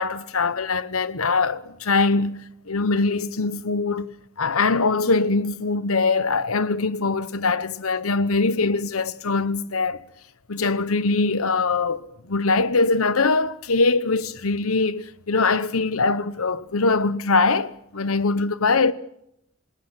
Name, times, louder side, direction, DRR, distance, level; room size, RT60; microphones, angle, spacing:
voice 1, 0.0-10.0 10.5-18.9, left 3 dB, 85° left, 1.0 m, -22 dB
28.0 x 19.0 x 6.2 m
head